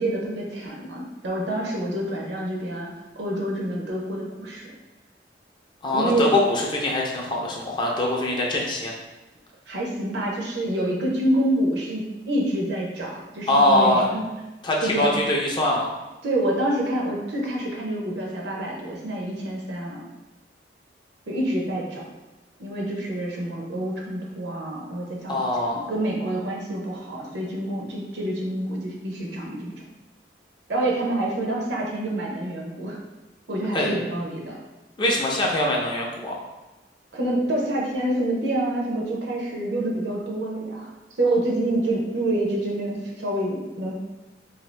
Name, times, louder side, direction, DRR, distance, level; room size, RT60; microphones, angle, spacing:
voice 1, 0.0-2.9 3.2-4.6 5.9-6.2 9.7-14.2 14.8-15.1 16.2-20.0 21.3-22.0 22.6-29.7 30.7-33.0 33.5-34.6 37.1-40.9 41.2-43.9, right 1 dB, 65° right, -2 dB, 0.7 m, -27 dB
voice 2, 5.8-8.9 13.5-14.0 14.6-15.9 25.3-25.8 33.7-33.9 35.0-36.4, left 1 dB, 25° left, -2 dB, 0.4 m, -22 dB
2.7 x 2.4 x 3.2 m, 1.1 s
head